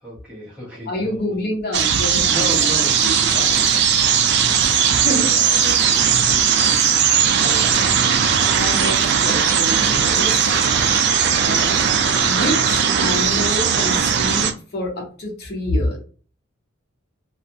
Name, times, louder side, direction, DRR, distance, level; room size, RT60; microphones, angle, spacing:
voice 1, 0.0-1.5 1.8-3.1 4.2-4.8 5.1-7.2 8.9-9.2, equal, 5° right, -6 dB, 0.9 m, -35 dB
voice 2, 0.9-2.6 3.3-3.5 3.9-4.0 5.0-5.3 7.4-8.1 8.5-10.5 11.4-11.8 12.2-16.0, left 1 dB, 50° left, -1 dB, 0.9 m, -27 dB
sound 1, 1.7-14.5, right 7 dB, 55° right, 0.4 m, -18 dB
2.4 x 2.4 x 2.7 m, 0.39 s
head